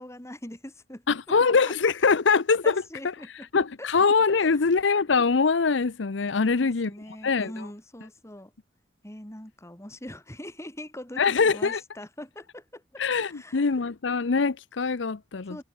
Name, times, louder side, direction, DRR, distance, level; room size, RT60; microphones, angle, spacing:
voice 1, 0.0-1.2 1.4-1.9 2.6-3.5 3.8-4.0 4.4-4.7 6.4-8.5 9.0-13.7 15.5-15.6, left 1 dB, 15° left, 2.9 m, -42 dB
voice 2, 1.1-2.7 3.5-6.9 7.2-7.5 11.2-11.8 13.0-15.6, left 5 dB, 80° left, 0.7 m, -23 dB
head